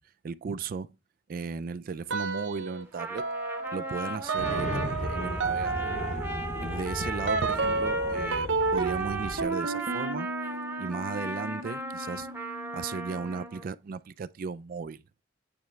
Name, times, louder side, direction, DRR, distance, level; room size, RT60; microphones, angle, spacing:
voice 1, 0.2-0.9 1.3-3.3 3.7-5.9 6.6-10.3 10.8-12.3 12.7-15.0, right 5 dB, 50° right, 0.3 m, -36 dB
sound 1, 2.1-2.8 3.2-13.5, right 4 dB, 80° right, 0.7 m, -32 dB
Trumpet, 2.8-13.7, right 2 dB, 10° right, 0.9 m, -37 dB
sound 2, 4.4-9.5, left 1 dB, 40° left, 0.8 m, -36 dB
8.8 x 3.2 x 4.4 m
head